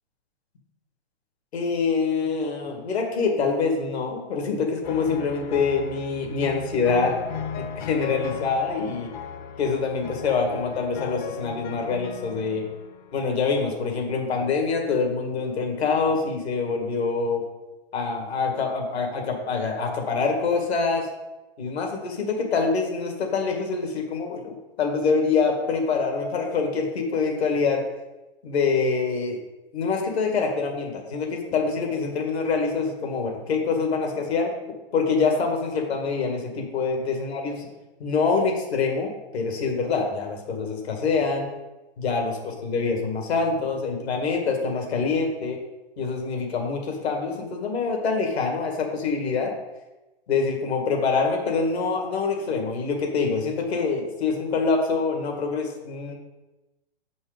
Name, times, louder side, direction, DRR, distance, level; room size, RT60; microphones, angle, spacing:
voice 1, 1.5-7.1 7.5-9.1 9.6-12.6 13.1-17.4 17.9-21.1 21.6-27.8 28.4-29.4 29.7-34.5 34.9-37.6 38.0-41.5 42.0-45.6 46.0-49.5 50.3-56.1, left 4 dB, 70° left, 2 dB, 2.1 m, -25 dB
sound 1, 4.8-13.4 14.2-14.7, left 7 dB, 45° left, 0.8 m, -36 dB
8.0 x 5.4 x 5.2 m, 1.0 s
hypercardioid pair, 135°, 33 cm